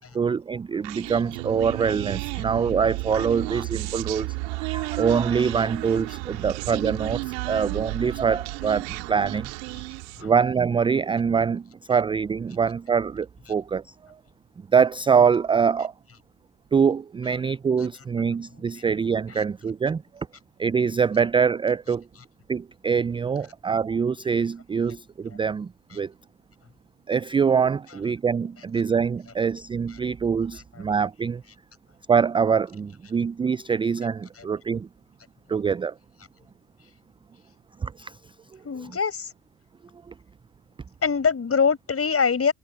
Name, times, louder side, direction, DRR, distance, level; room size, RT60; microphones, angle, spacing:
voice 1, 0.1-9.5 10.2-13.8 14.7-15.9 16.7-20.3 20.6-22.0 22.5-26.1 27.1-31.4 32.1-34.9 35.5-35.9 37.8-38.1, right 6 dB, 15° right, 0.3 m, -24 dB
Human voice, 0.8-10.3, right 28 dB, 75° right, 2.0 m, -32 dB
voice 2, 38.6-39.3 41.0-42.5, left 6 dB, 35° left, 6.5 m, -24 dB
hypercardioid pair, 60°, 42 cm